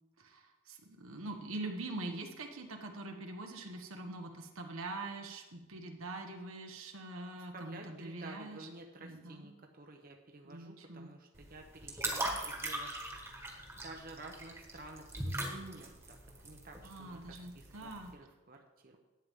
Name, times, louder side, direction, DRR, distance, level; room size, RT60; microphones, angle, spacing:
voice 1, 0.2-8.7 9.0-9.5 10.4-11.1 16.8-18.1, right 2 dB, 85° right, 3 dB, 1.3 m, -44 dB
voice 2, 7.3-13.0 13.8-19.0, right 2 dB, 45° right, 2 dB, 0.8 m, -52 dB
sound 1, 11.4-18.1, right 1 dB, 10° right, 1.5 m, -40 dB
11.5 x 9.1 x 3.7 m, 1.1 s
head